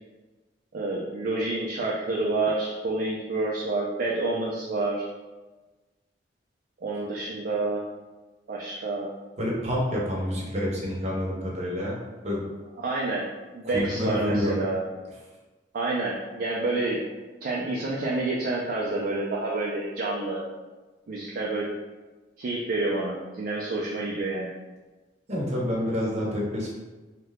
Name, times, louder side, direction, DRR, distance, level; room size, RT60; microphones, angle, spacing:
voice 1, 0.7-5.1 6.8-7.8 8.5-9.1 12.8-13.3 13.5-14.8 15.7-17.0 17.4-20.4 21.1-21.7 22.4-24.5, right 2 dB, 55° right, -5 dB, 0.4 m, -28 dB
voice 2, 9.4-12.0 12.2-12.4 13.6-14.5 25.3-26.7, left 1 dB, 40° right, -4 dB, 0.7 m, -28 dB
2.7 x 2.1 x 3.4 m, 1.2 s
head